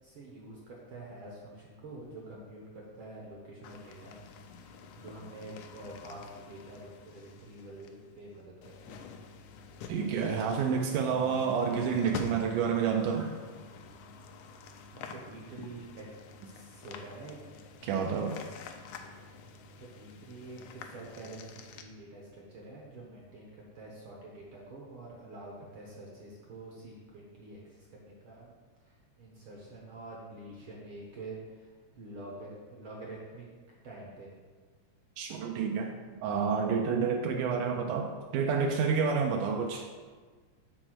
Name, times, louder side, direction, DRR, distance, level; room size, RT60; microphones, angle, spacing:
voice 1, 0.0-4.2 4.5-9.1 14.9-16.1 16.4-17.6 17.9-18.4 19.8-28.5 28.8-34.3, right 2 dB, 65° right, -3 dB, 1.3 m, -47 dB
sound 1, 3.6-21.8, left 6 dB, 80° left, 1.9 m, -48 dB
voice 2, 9.9-13.3 17.8-18.4 35.2-35.9 36.2-39.8, right 6 dB, 85° right, 2 dB, 2.1 m, -29 dB
6.0 x 4.3 x 6.2 m, 1.4 s
omnidirectional pair, 3.6 m